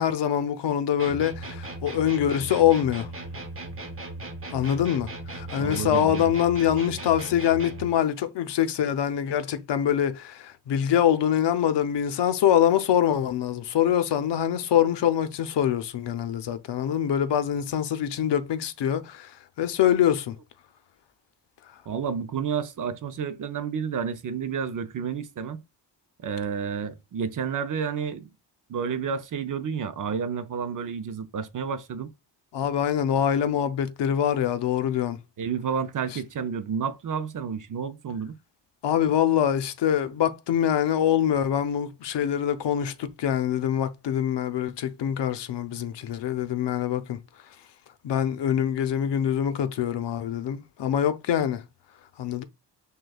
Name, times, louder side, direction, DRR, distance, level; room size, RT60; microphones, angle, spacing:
voice 1, 0.0-3.1 4.5-20.4 32.5-35.2 38.8-47.2 48.0-51.6 52.2-52.4, left 10 dB, 70° left, 0.7 m, -24 dB
sound 1, 1.0-8.0, right 2 dB, 30° right, 1.1 m, -37 dB
voice 2, 5.6-6.3 21.9-25.6 26.2-28.3 28.7-32.1 35.4-38.4, right 6 dB, 45° right, 0.6 m, -30 dB
6.2 x 2.3 x 2.3 m
wide cardioid pair, 120°, 43 cm